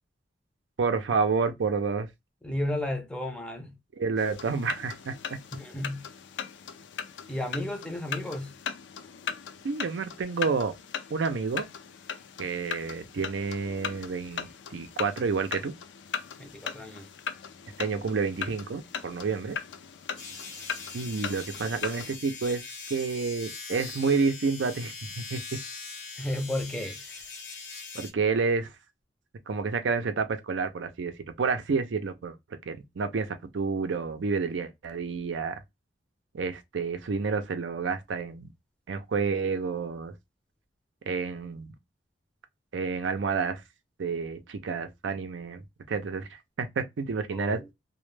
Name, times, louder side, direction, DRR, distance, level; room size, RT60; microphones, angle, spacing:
voice 1, 0.8-2.1 4.0-5.1 9.6-10.8 11.1-11.7 12.4-15.7 17.8-19.6 20.9-22.6 22.9-25.4 27.9-28.7 29.5-31.1 31.4-32.3 32.7-35.6 36.3-38.5 38.9-40.1 41.1-41.7 42.7-43.6 44.0-45.6 45.9-47.6, right 4 dB, 90° right, 0.5 m, -29 dB
voice 2, 2.4-3.8 5.5-6.1 7.3-8.6 16.4-17.1 26.2-27.2 47.3-47.7, left 1 dB, 5° left, 0.5 m, -33 dB
sound 1, 4.2-22.2, left 7 dB, 75° left, 0.4 m, -39 dB
sound 2, 20.2-28.1, left 4 dB, 90° left, 0.9 m, -42 dB
2.1 x 2.1 x 3.1 m
head